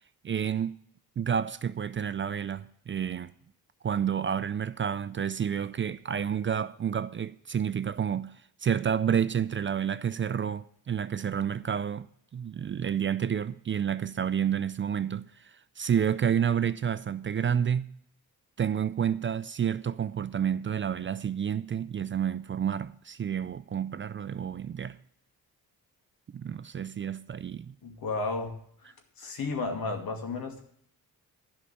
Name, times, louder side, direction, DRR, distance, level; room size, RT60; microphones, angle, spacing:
voice 1, 0.2-0.8 1.2-3.3 3.8-8.3 8.6-12.1 12.3-17.9 18.6-25.0 26.3-27.7, right 8 dB, 35° right, 0.4 m, -29 dB
voice 2, 27.8-28.5 28.8-30.6, left 3 dB, 75° left, 2.3 m, -33 dB
11.5 x 5.6 x 8.8 m
cardioid pair, 115°, 36 cm